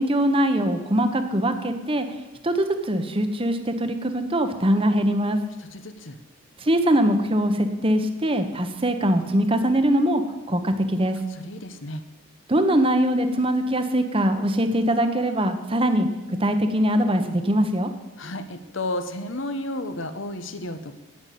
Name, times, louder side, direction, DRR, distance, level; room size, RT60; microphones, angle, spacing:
voice 1, 0.0-2.0 2.4-5.4 6.6-10.2 10.5-11.2 12.5-16.1 16.4-17.9, right 1 dB, 25° right, 8 dB, 1.0 m, -22 dB
voice 2, 5.6-6.2 11.3-12.0 18.2-21.0, left 1 dB, 65° left, 9 dB, 1.1 m, -32 dB
9.8 x 9.0 x 8.4 m, 1.1 s
head